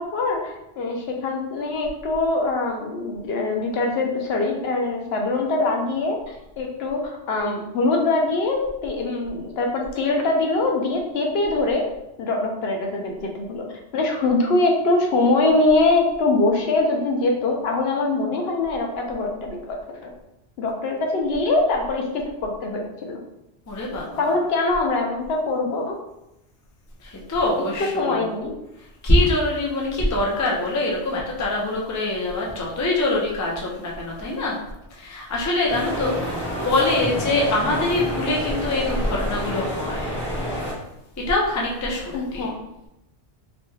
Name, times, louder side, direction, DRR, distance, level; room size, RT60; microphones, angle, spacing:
voice 1, 0.0-11.9 12.2-13.6 13.9-19.8 20.0-20.1 20.6-22.0 22.4-23.2 24.2-25.9 28.0-28.5 42.1-42.5, left 2 dB, 70° left, 1 dB, 0.8 m, -23 dB
voice 2, 23.7-24.3 27.0-28.2 29.0-34.6 35.0-40.1 41.2-42.5, left 2 dB, 25° left, -2 dB, 0.4 m, -24 dB
sound 1, 35.7-40.7, equal, 10° left, 0.9 m, -28 dB
3.0 x 2.2 x 3.1 m, 0.87 s
omnidirectional pair, 1.1 m